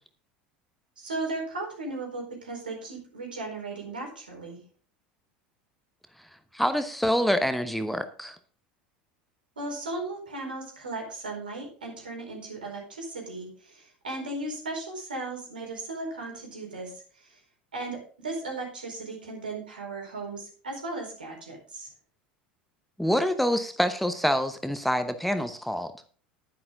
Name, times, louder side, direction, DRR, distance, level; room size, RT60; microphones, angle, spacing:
voice 1, 1.0-4.6 9.6-17.4 17.7-21.9, right 2 dB, 75° right, 1 dB, 4.5 m, -36 dB
voice 2, 6.5-8.4 23.0-25.9, equal, ahead, 10 dB, 1.0 m, -26 dB
11.0 x 10.5 x 3.8 m, 0.41 s
figure-of-eight pair, 75°, 5 cm